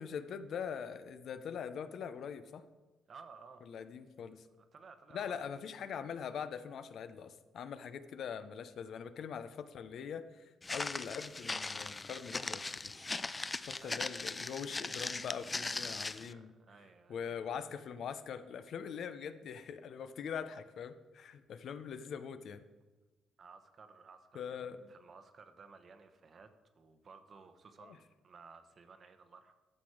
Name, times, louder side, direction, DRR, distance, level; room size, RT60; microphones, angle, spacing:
voice 1, 0.0-2.6 3.7-4.5 5.1-12.9 13.6-16.5 17.1-22.6 24.3-24.9 27.8-28.0, left 7 dB, 65° left, 11 dB, 0.7 m, -43 dB
voice 2, 3.1-3.7 4.6-5.5 12.4-12.7 13.8-14.2 16.3-17.5 23.4-29.5, right 5 dB, 45° right, 9 dB, 1.0 m, -57 dB
Walk footsteps, 10.6-16.3, left 3 dB, 25° left, 0.4 m, -39 dB
12.5 x 6.1 x 4.9 m, 1.2 s
cardioid pair, 90°, 0 cm